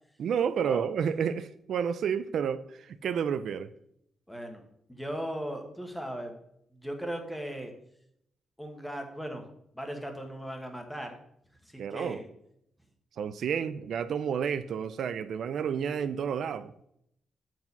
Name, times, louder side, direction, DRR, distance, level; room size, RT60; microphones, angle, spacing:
voice 1, 0.2-3.7 11.8-12.2 13.2-16.8, right 7 dB, 65° right, 12 dB, 0.4 m, -30 dB
voice 2, 4.3-4.6 4.9-6.3 6.7-7.7 8.6-9.4 9.7-11.1 11.6-12.3, equal, 5° left, 4 dB, 1.2 m, -37 dB
7.8 x 4.7 x 5.4 m, 0.73 s
wide cardioid pair, 160°, 0 cm